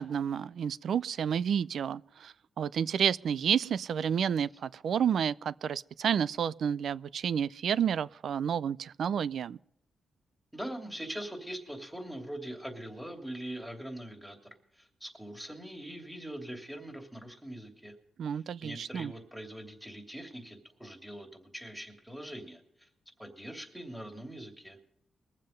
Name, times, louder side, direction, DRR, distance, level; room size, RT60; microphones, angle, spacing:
voice 1, 0.0-9.6 18.2-19.1, right 8 dB, 70° right, 0.4 m, -30 dB
voice 2, 10.5-17.9 18.3-22.9 23.2-24.8, right 1 dB, ahead, 2.9 m, -42 dB
22.0 x 7.5 x 5.2 m
cardioid pair, 85°, 0 cm